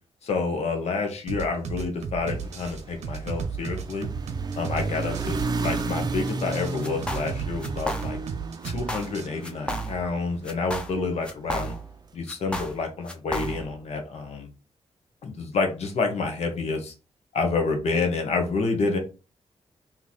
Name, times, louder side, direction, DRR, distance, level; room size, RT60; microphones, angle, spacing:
voice 1, 0.2-4.1 4.5-5.4 5.6-8.2 8.6-11.7 12.1-14.5 15.2-16.9 17.3-19.0, left 4 dB, 70° left, 4 dB, 1.1 m, -28 dB
sound 1, 1.3-9.3, right 6 dB, 80° right, 0.8 m, -34 dB
sound 2, 2.2-10.5, right 3 dB, 35° right, 0.5 m, -33 dB
sound 3, 6.8-7.3 7.6-8.3 8.6-9.2 9.4-10.2 10.5-12.0 12.3-13.8, right 1 dB, 10° left, 0.7 m, -33 dB
3.3 x 2.9 x 4.1 m, 0.33 s
wide cardioid pair, 115°, 11 cm